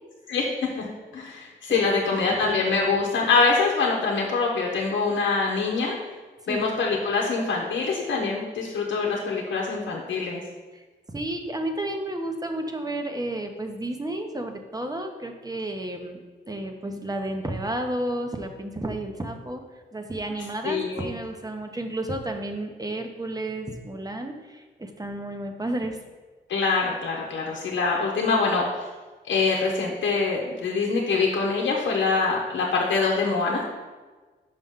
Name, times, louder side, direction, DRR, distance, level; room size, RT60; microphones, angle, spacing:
voice 1, 1.1-5.9 6.5-10.4 20.6-21.1 26.5-28.9 29.3-33.6, left 4 dB, 75° left, -2 dB, 0.9 m, -24 dB
voice 2, 1.7-2.0 2.3-2.4 6.5-6.7 10.7-16.2 16.5-19.6 19.9-26.0, right 1 dB, 20° right, 5 dB, 0.9 m, -32 dB
5.7 x 5.3 x 3.7 m, 1.3 s
cardioid pair, 55°, 19 cm